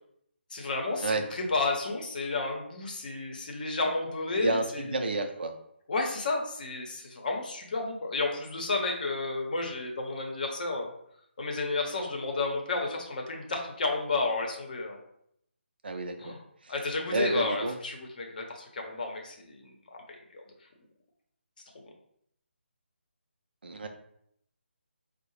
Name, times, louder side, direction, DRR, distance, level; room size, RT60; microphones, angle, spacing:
voice 1, 0.5-5.2 5.9-10.9 11.4-15.0 16.2-16.4 16.7-20.4, left 3 dB, 45° left, 2 dB, 0.7 m, -32 dB
voice 2, 4.4-5.5 15.8-16.3 16.6-16.7 17.1-17.7 23.6-23.9, right 2 dB, 55° right, 6 dB, 0.5 m, -30 dB
4.5 x 2.0 x 3.0 m, 0.71 s
figure-of-eight pair, 150°, 6 cm